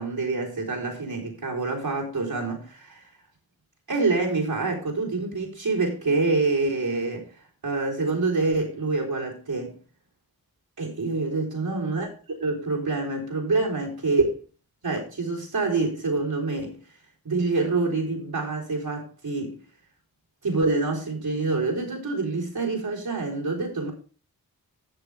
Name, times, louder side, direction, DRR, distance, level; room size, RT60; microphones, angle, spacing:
voice 1, 0.0-3.0 3.9-7.3 7.6-9.8 10.8-12.1 12.4-14.3 14.8-16.8 17.2-19.6 20.4-23.9, right 3 dB, 80° right, 3.9 m, -26 dB
13.0 x 8.1 x 3.5 m
wide cardioid pair, 70°, 36 cm